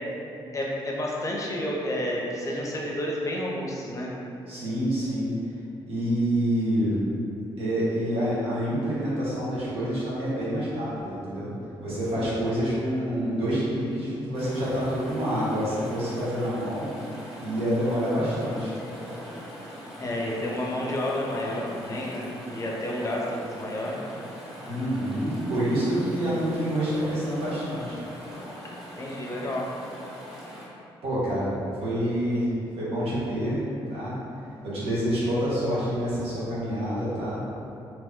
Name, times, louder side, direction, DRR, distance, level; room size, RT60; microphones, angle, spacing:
voice 1, 0.5-4.1 12.2-12.5 20.0-24.0 26.2-26.5 29.0-29.7, left 1 dB, 35° left, -3 dB, 0.6 m, -30 dB
voice 2, 4.5-5.4 5.9-7.0 7.6-11.5 11.8-16.9 17.4-18.7 24.7-28.0 31.0-31.5 31.8-32.5 32.8-33.6 33.9-34.2 34.6-37.4, equal, 85° right, -9 dB, 1.0 m, -27 dB
Chatter / Stream, 14.3-30.7, equal, 5° right, 1.0 m, -42 dB
2.8 x 2.1 x 3.6 m, 2.7 s
cardioid pair, 70°, 10 cm